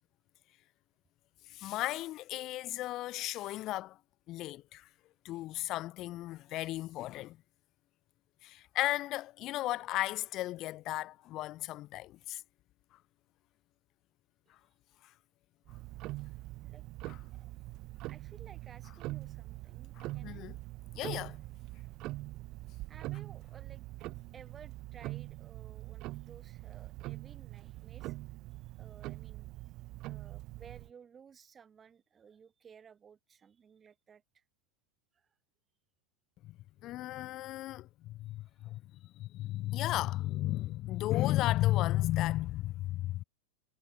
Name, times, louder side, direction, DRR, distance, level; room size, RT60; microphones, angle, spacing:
voice 1, 1.5-4.0 4.3-4.9 5.2-7.4 8.4-12.4 17.1-17.2 20.0-20.6 20.9-21.4 36.4-36.6 36.8-43.2, left 16 dB, 35° left, 0.6 m, -34 dB
Tick-tock, 15.7-30.9, right 19 dB, 40° right, 0.9 m, -43 dB
voice 2, 18.0-20.5 21.8-22.6 22.9-28.2 28.7-29.5 30.0-34.4 35.1-35.3 36.8-36.9 38.3-39.1, right 7 dB, 20° right, 7.3 m, -57 dB
figure-of-eight pair, 90°, 0 cm